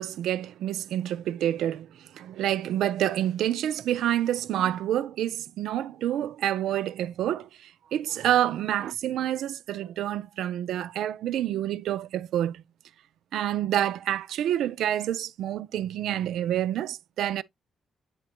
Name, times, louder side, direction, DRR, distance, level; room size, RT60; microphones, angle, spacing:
voice 1, 0.0-12.6 13.3-17.4, right 11 dB, 90° right, 0.3 m, -28 dB
9.2 x 4.2 x 2.9 m
cardioid pair, 180°, 0 cm